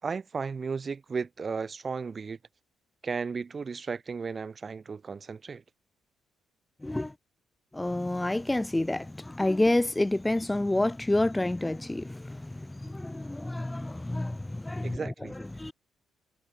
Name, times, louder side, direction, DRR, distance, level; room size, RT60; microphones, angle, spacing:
voice 1, 0.0-2.4 3.0-5.6 14.8-15.3, right 5 dB, 35° right, 3.8 m, -34 dB
voice 2, 6.8-7.1 7.7-15.7, left 1 dB, 10° left, 1.9 m, -29 dB
cardioid pair, 90°, 0 cm